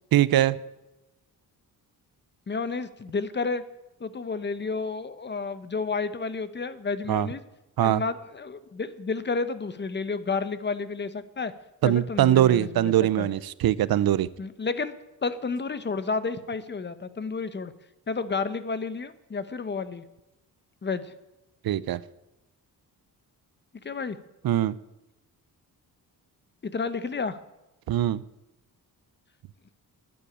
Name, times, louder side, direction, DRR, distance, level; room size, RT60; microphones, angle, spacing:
voice 1, 0.1-0.6 7.1-7.3 7.8-8.0 11.8-14.3 21.6-22.0 24.4-24.7 27.9-28.2, right 12 dB, 65° right, 18 dB, 0.6 m, -22 dB
voice 2, 2.5-3.6 4.0-7.4 7.8-11.5 11.8-13.3 14.4-14.9 15.2-17.7 18.1-20.0 20.8-21.1 23.8-24.2 26.6-27.4, left 4 dB, 30° left, 13 dB, 0.8 m, -31 dB
12.0 x 9.7 x 9.9 m, 0.98 s
wide cardioid pair, 170°, 39 cm